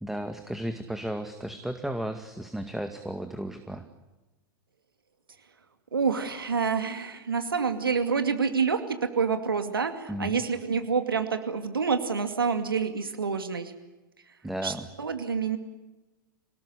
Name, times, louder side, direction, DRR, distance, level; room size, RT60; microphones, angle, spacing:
voice 1, 0.0-3.9 10.1-10.4 14.4-14.9, right 1 dB, ahead, 7 dB, 2.0 m, -34 dB
voice 2, 5.9-13.7 14.6-15.6, right 5 dB, 85° right, 8 dB, 2.4 m, -27 dB
28.5 x 19.0 x 10.0 m, 1.1 s
hypercardioid pair, 100°, 12 cm